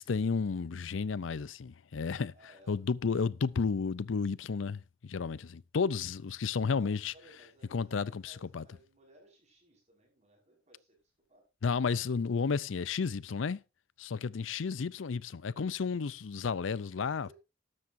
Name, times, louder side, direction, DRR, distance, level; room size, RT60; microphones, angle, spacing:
voice 1, 0.0-2.3 2.7-7.1 7.7-8.6 11.6-13.6 14.0-17.3, left 5 dB, 85° left, 0.5 m, -32 dB
voice 2, 2.3-2.8 6.7-11.0 11.3-11.4 17.3-17.4, right 1 dB, 35° right, 5.5 m, -61 dB
13.0 x 12.0 x 2.7 m
head